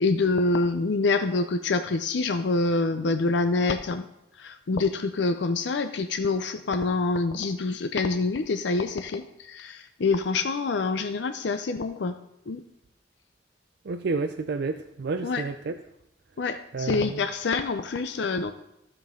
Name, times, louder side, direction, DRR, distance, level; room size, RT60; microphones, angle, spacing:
voice 1, 0.0-4.0 4.4-12.2 12.5-12.6 15.2-15.4 16.4-18.5, left 3 dB, 70° left, 9 dB, 0.5 m, -26 dB
voice 2, 13.9-15.8 16.7-17.2, right 4 dB, 60° right, 7 dB, 0.4 m, -30 dB
15.0 x 5.4 x 3.6 m, 0.81 s
head